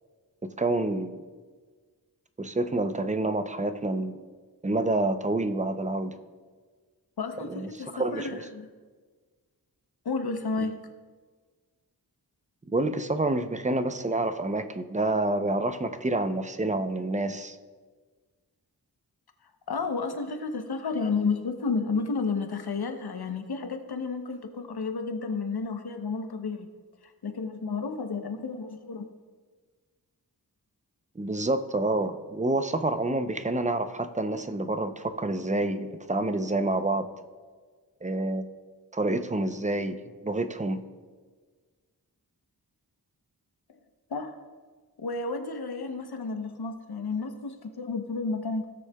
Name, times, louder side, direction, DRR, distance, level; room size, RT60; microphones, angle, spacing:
voice 1, 0.4-1.2 2.4-4.2 4.6-6.2 7.4-8.4 12.7-17.6 31.2-37.1 38.0-38.4 38.9-40.0 40.2-40.8, right 2 dB, 20° right, 9 dB, 0.6 m, -28 dB
voice 2, 7.2-8.7 10.0-10.9 19.7-26.7 27.2-29.0 44.1-44.3 45.0-48.7, left 4 dB, 75° left, 7 dB, 0.9 m, -31 dB
16.5 x 6.3 x 2.3 m, 1.5 s
cardioid pair, 50°, 39 cm